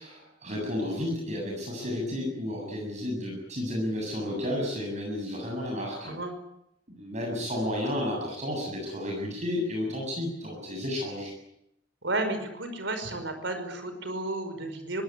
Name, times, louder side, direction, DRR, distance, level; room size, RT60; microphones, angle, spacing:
voice 1, 0.0-6.1 7.0-11.3, left 1 dB, 40° right, 0 dB, 7.7 m, -32 dB
voice 2, 6.0-6.4 12.0-15.0, right 2 dB, 70° right, 8 dB, 5.3 m, -32 dB
23.5 x 18.5 x 9.9 m, 0.81 s
head